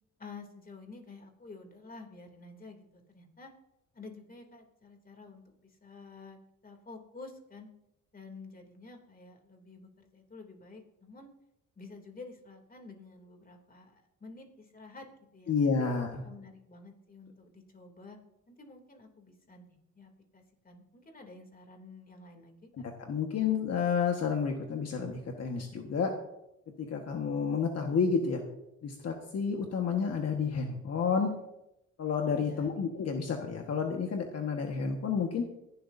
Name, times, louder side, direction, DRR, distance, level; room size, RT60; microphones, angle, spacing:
voice 1, 0.2-3.5 3.9-6.4 6.6-7.7 8.1-11.3 11.8-15.8 16.2-18.2 18.5-22.7 32.3-32.7, left 3 dB, 30° left, 3 dB, 2.9 m, -50 dB
voice 2, 15.5-16.2 22.8-26.1 26.8-28.4 28.8-31.3 32.0-35.4, left 6 dB, 55° left, 2 dB, 1.6 m, -30 dB
26.5 x 11.5 x 2.7 m, 0.89 s
cardioid pair, 90°, 30 cm